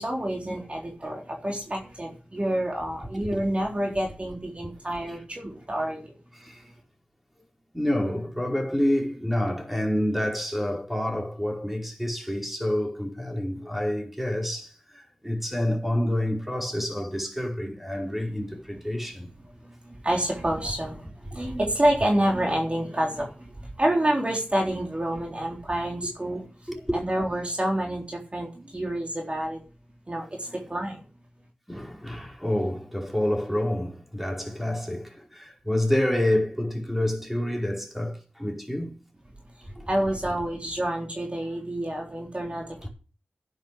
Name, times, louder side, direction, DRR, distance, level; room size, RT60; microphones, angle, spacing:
voice 1, 0.0-6.1 19.9-26.4 26.9-29.6 30.1-31.0 39.9-42.9, right 1 dB, 35° right, 3.8 m, -28 dB
voice 2, 6.3-6.7 7.7-19.3 21.2-21.4 26.7-26.8 31.7-38.9 39.7-39.9 42.8-42.9, left 1 dB, 5° right, 5.0 m, -28 dB
10.5 x 10.5 x 6.9 m
wide cardioid pair, 60°, 4 cm